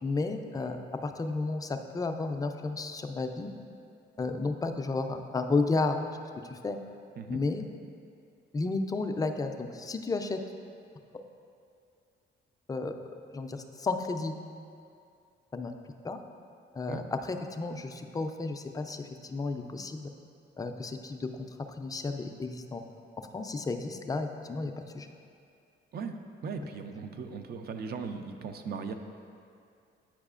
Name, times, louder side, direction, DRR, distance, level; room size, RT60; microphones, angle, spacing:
voice 1, 0.0-3.5 4.2-6.0 6.4-6.8 7.3-7.6 8.5-10.4 12.7-13.0 13.3-14.3 15.5-15.7 16.0-16.2 16.7-20.1 20.6-21.5 21.8-22.8 23.3-25.1, left 3 dB, 20° left, 5 dB, 0.4 m, -32 dB
voice 2, 26.4-28.9, right 5 dB, 55° right, 6 dB, 0.5 m, -38 dB
8.7 x 4.8 x 2.4 m, 2.5 s
cardioid pair, 90°, 20 cm